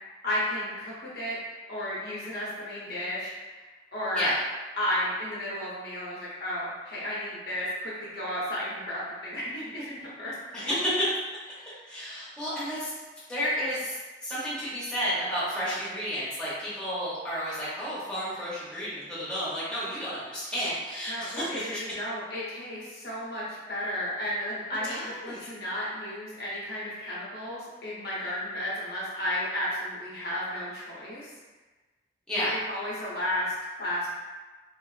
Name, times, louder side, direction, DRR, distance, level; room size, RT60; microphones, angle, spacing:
voice 1, 0.2-1.4 1.7-3.4 3.9-4.3 4.8-10.3 11.6-11.8 21.1-31.3 32.3-34.1, left 1 dB, 60° left, -7 dB, 0.8 m, -33 dB
voice 2, 10.5-10.9 11.9-12.9 13.3-14.0 14.2-21.7 24.8-25.4 32.3-32.5, equal, 5° left, -11 dB, 0.7 m, -31 dB
3.0 x 2.5 x 2.4 m, 1.3 s
head